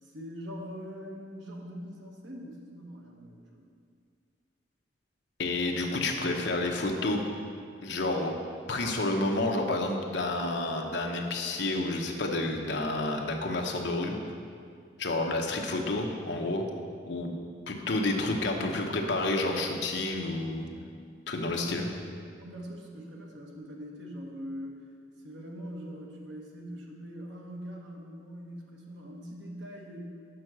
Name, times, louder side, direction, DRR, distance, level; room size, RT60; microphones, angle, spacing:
voice 1, 0.0-3.7 21.5-21.8 22.3-24.8 25.2-30.1, equal, 75° right, -1 dB, 1.2 m, -42 dB
voice 2, 5.4-7.2 7.8-8.3 8.7-14.2 15.0-16.6 17.1-17.3 17.7-20.7 21.3-21.9, left 2 dB, 65° left, 2 dB, 0.8 m, -30 dB
6.2 x 5.4 x 6.1 m, 2.2 s
head